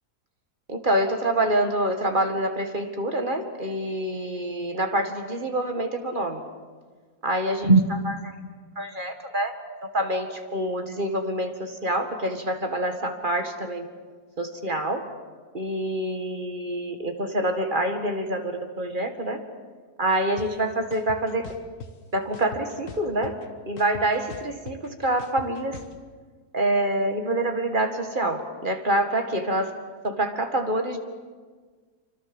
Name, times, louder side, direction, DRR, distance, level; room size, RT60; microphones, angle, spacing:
voice 1, 0.7-6.4 7.2-8.3 8.8-9.5 9.8-13.9 14.4-15.0 15.5-19.4 20.0-21.5 22.1-23.3 23.7-25.8 26.5-29.7 30.0-31.0, right 1 dB, 30° right, 5 dB, 2.0 m, -26 dB
sound 1, 20.4-20.5 20.9-21.9 22.3-23.5 23.8-25.9, left 4 dB, 55° left, 1.7 m, -40 dB
26.5 x 25.0 x 7.2 m, 1.5 s
omnidirectional pair, 1.7 m